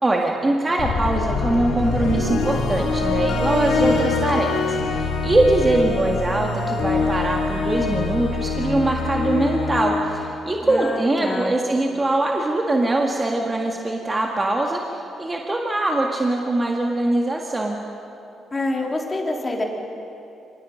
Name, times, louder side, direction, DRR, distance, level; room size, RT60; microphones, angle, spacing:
voice 1, 0.0-17.8, right 2 dB, 20° right, 0 dB, 1.9 m, -22 dB
sound 1, 0.8-11.0, left 4 dB, 80° left, 3.1 m, -24 dB
voice 2, 10.6-11.5 18.5-19.6, left 2 dB, 25° left, 0 dB, 3.2 m, -26 dB
24.0 x 19.0 x 6.5 m, 2.8 s
cardioid pair, 90°, 0 cm